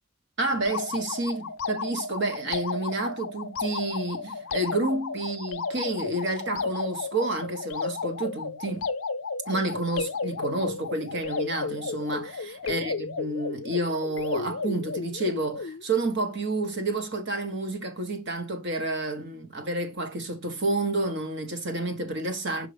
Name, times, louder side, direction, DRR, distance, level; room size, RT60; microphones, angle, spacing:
voice 1, 0.4-8.9 9.5-22.7, right 2 dB, 55° right, 1.4 m, -30 dB
sound 1, 0.6-15.8, left 4 dB, 75° left, 0.6 m, -33 dB
5.5 x 5.2 x 3.4 m
head